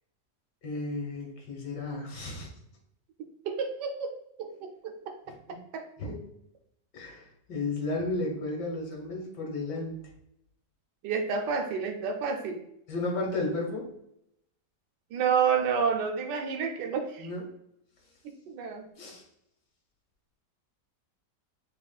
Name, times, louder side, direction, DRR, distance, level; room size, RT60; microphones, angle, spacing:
voice 1, 0.6-2.5 5.5-5.6 6.0-6.2 6.9-10.0 12.9-13.9 17.2-17.4 19.0-19.2, left 2 dB, 80° left, 0 dB, 1.9 m, -33 dB
voice 2, 3.4-5.1 5.5-5.8 11.0-12.6 15.1-17.3 18.2-18.9, right 6 dB, 80° right, 4 dB, 1.3 m, -30 dB
6.5 x 3.0 x 2.3 m, 0.75 s
omnidirectional pair, 1.8 m